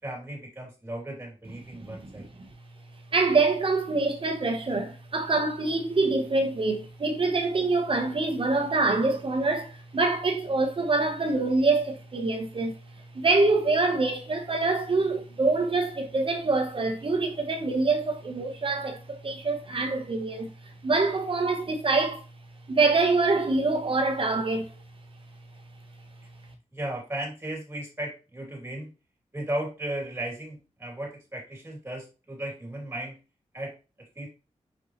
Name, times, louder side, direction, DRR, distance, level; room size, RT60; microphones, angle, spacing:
voice 1, 0.0-2.3 26.7-28.9 29.3-33.2 33.5-34.3, right 1 dB, 20° right, 3.3 m, -35 dB
voice 2, 2.1-2.5 3.1-12.7 13.1-20.5 20.8-22.2 22.7-24.7, right 3 dB, 45° right, 1.4 m, -25 dB
5.8 x 5.5 x 3.3 m
wide cardioid pair, 140°, 12 cm